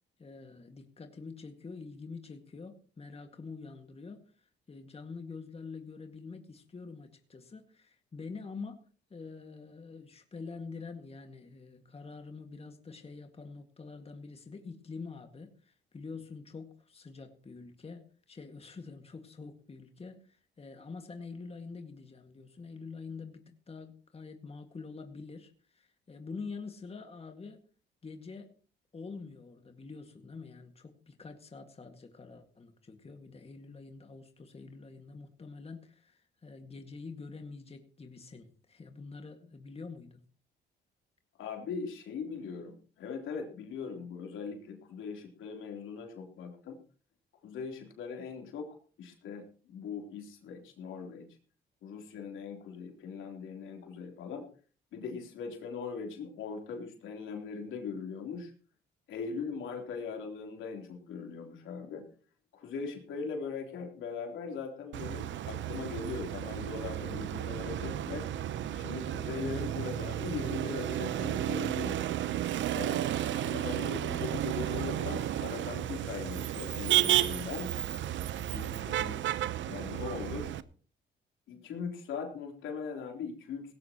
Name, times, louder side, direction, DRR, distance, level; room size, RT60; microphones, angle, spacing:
voice 1, 0.2-27.6 28.0-28.5 28.9-40.2, left 4 dB, 30° left, 5 dB, 2.0 m, -46 dB
voice 2, 41.4-46.8 47.4-51.3 51.8-54.5 54.9-58.5 59.1-62.0 62.5-68.3 68.7-72.0 72.7-77.7 78.5-79.3 79.7-80.5 81.5-83.7, left 5 dB, 80° left, 2 dB, 3.6 m, -40 dB
Motor vehicle (road), 64.9-80.6, right 12 dB, 70° right, 0.8 m, -33 dB
18.0 x 17.0 x 3.0 m, 0.39 s
cardioid pair, 90°, 20 cm